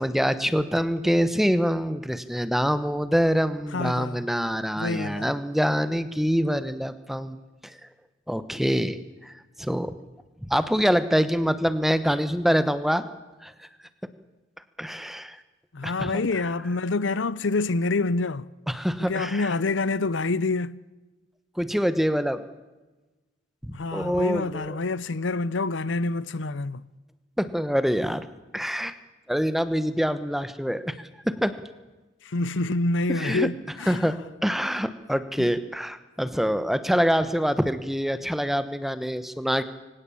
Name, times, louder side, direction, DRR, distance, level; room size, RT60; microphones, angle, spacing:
voice 1, 0.0-7.4 7.6-7.8 8.3-9.9 10.5-13.0 13.4-13.7 14.8-15.4 15.8-16.5 18.7-19.5 21.6-22.4 23.6-24.8 27.4-28.3 28.5-29.0 29.3-31.6 33.1-33.5 33.9-34.2 34.4-39.6, equal, ahead, 1.1 m, -25 dB
voice 2, 3.7-4.2 4.8-5.3 15.7-18.5 19.0-20.8 23.7-26.8 32.2-34.1 35.4-35.5, left 3 dB, 70° left, 0.7 m, -27 dB
24.5 x 17.0 x 8.6 m
head